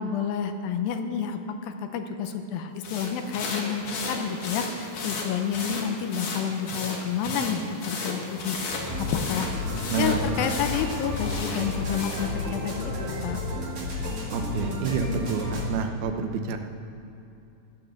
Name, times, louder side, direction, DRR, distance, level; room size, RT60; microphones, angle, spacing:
voice 1, 0.0-9.5 10.0-13.4, left 7 dB, 75° left, 7 dB, 2.6 m, -30 dB
sound 1, 2.8-12.3, left 3 dB, 60° left, 3.3 m, -35 dB
sound 2, 8.7-15.7, left 2 dB, 40° right, 3.0 m, -31 dB
voice 2, 9.9-10.5 14.3-16.6, right 5 dB, 80° right, 6 dB, 2.8 m, -28 dB
16.0 x 11.5 x 6.6 m, 2.7 s
omnidirectional pair, 4.3 m